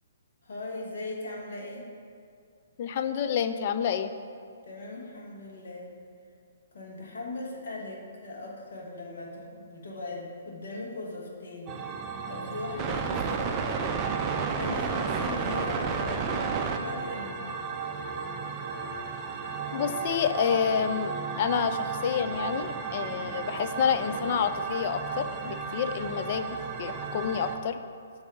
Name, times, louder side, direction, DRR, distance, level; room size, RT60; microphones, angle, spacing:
voice 1, 0.4-1.9 4.6-5.9 6.7-11.8 12.2-13.9 14.3-17.5, left 2 dB, 60° left, -3 dB, 1.3 m, -39 dB
voice 2, 2.8-4.1 19.7-27.8, left 8 dB, 40° left, 10 dB, 0.3 m, -29 dB
sound 1, 11.7-27.6, right 5 dB, 25° right, 0.4 m, -33 dB
7.6 x 2.7 x 5.8 m, 2.3 s
figure-of-eight pair, 125°, 0 cm